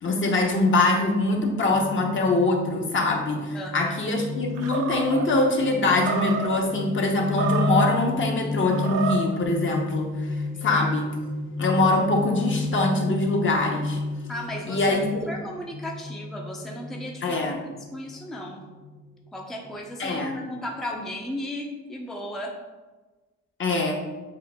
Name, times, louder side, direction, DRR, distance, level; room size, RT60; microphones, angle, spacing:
voice 1, 0.0-10.1 10.6-11.1 11.6-14.0 14.7-15.3 17.2-17.6 20.0-20.4 23.6-24.0, left 2 dB, 40° left, 1 dB, 0.8 m, -23 dB
sound 1, 1.7-20.9, left 3 dB, 80° left, 0.8 m, -33 dB
voice 2, 3.5-4.0 10.2-10.7 14.3-17.6 17.9-18.6 19.3-22.5, left 1 dB, ahead, 0 dB, 0.5 m, -35 dB
Animal, 4.6-5.3 6.0-6.6 7.2-8.0 8.7-9.4, right 6 dB, 55° right, 0.5 m, -29 dB
7.3 x 2.6 x 2.2 m, 1.2 s
cardioid pair, 90°, 30 cm